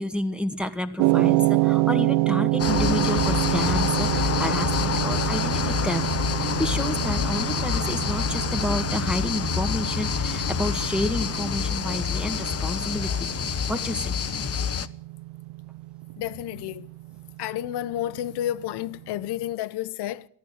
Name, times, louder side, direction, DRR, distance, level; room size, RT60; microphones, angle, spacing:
voice 1, 0.0-6.0 6.3-14.1, left 1 dB, ahead, 2.0 m, -30 dB
sound 1, 1.0-19.2, right 20 dB, 85° right, 0.5 m, -28 dB
sound 2, 2.6-14.9, left 7 dB, 35° left, 0.8 m, -27 dB
voice 2, 16.2-16.9 17.4-20.3, left 13 dB, 70° left, 0.8 m, -30 dB
15.0 x 12.0 x 7.9 m
supercardioid pair, 65°, 41 cm